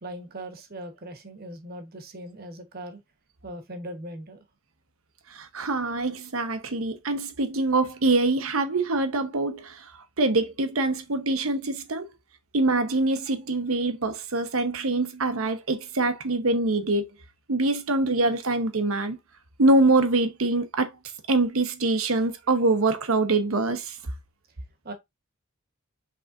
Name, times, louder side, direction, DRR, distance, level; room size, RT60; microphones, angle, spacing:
voice 1, 0.0-3.0 3.4-4.4 24.8-24.9, right 1 dB, 45° right, 1.1 m, -39 dB
voice 2, 5.3-9.9 10.2-12.1 12.5-17.1 17.5-19.2 19.6-20.9 21.3-24.0, right 2 dB, 85° right, 0.9 m, -24 dB
5.4 x 3.5 x 2.5 m
head